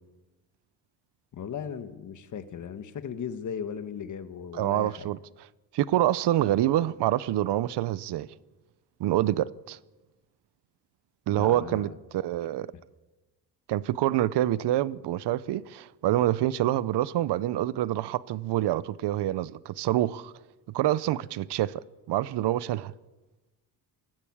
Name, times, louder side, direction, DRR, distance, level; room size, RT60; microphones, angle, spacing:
voice 1, 1.3-5.1 11.3-12.0, left 7 dB, 45° left, 1.5 m, -37 dB
voice 2, 4.5-5.2 5.7-8.3 9.0-9.8 11.3-12.7 13.7-20.3 20.7-22.9, right 14 dB, 75° right, 0.8 m, -26 dB
20.5 x 15.5 x 8.7 m
cardioid pair, 155°, 42 cm